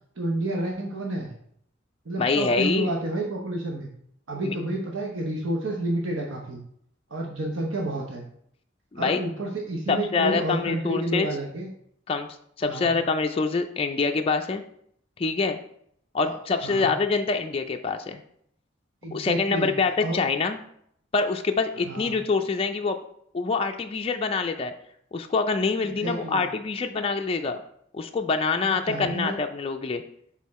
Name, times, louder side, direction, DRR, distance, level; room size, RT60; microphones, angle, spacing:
voice 1, 0.2-1.3 2.0-3.9 4.3-6.6 7.1-8.2 9.0-11.7 12.6-13.0 16.2-16.3 16.6-16.9 19.0-19.7 20.0-20.2 21.8-22.1 26.0-26.4 28.6-29.3, right 1 dB, 90° right, 0 dB, 0.9 m, -30 dB
voice 2, 2.2-2.9 4.4-4.5 8.9-9.2 9.9-11.3 12.1-12.3 12.6-14.6 15.2-15.6 16.1-18.2 19.1-20.6 21.1-23.0 23.3-24.7 25.1-27.6 27.9-30.0, left 4 dB, 30° left, 4 dB, 0.4 m, -25 dB
6.5 x 3.6 x 4.1 m, 0.69 s
head